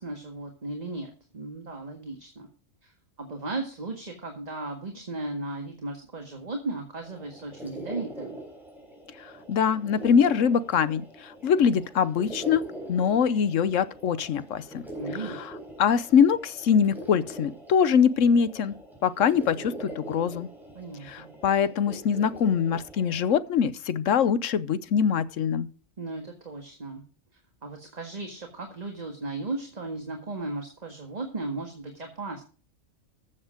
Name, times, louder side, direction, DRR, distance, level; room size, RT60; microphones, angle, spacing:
voice 1, 0.0-2.5 2.8-8.4 15.0-15.4 20.7-21.3 26.0-27.0 27.3-32.4, right 2 dB, 30° right, 1.8 m, -36 dB
sound 1, 7.0-23.3, right 1 dB, ahead, 4.6 m, -43 dB
voice 2, 9.2-12.6 12.9-14.8 15.2-15.5 15.8-18.8 19.0-20.5 21.1-25.7, left 7 dB, 75° left, 1.2 m, -23 dB
14.5 x 7.3 x 5.0 m
omnidirectional pair, 1.4 m